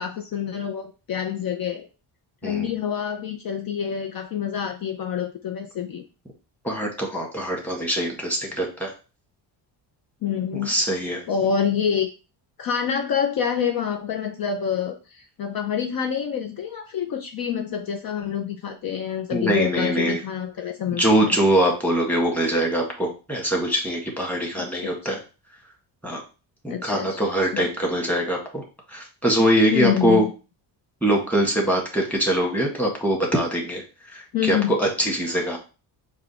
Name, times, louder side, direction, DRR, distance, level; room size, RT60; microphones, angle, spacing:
voice 1, 0.0-1.9 2.4-6.0 10.2-10.7 11.3-12.1 12.6-21.4 24.7-24.9 26.7-27.2 27.5-27.7 29.7-30.3 34.3-34.8, left 8 dB, 50° left, 4 dB, 0.7 m, -27 dB
voice 2, 6.6-8.9 10.5-11.2 19.3-20.2 20.9-25.2 26.0-26.2 26.6-28.6 28.9-30.2 31.0-33.8 34.1-35.6, right 1 dB, 5° left, -1 dB, 1.5 m, -23 dB
4.8 x 2.4 x 4.2 m, 0.33 s
cardioid pair, 100°, 46 cm